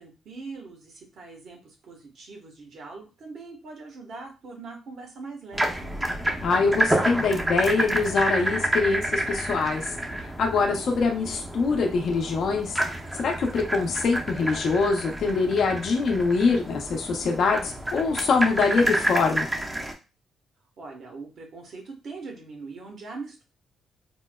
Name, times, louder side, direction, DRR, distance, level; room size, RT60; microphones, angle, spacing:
voice 1, 0.0-5.9 20.8-23.4, right 3 dB, 60° right, 0 dB, 1.2 m, -41 dB
sound 1, 5.5-19.9, right 1 dB, 15° right, 0.7 m, -29 dB
voice 2, 6.4-9.9 10.2-12.8 13.1-19.5, left 4 dB, 60° left, 1 dB, 0.6 m, -24 dB
4.3 x 2.1 x 2.2 m, 0.31 s
cardioid pair, 90°, 0 cm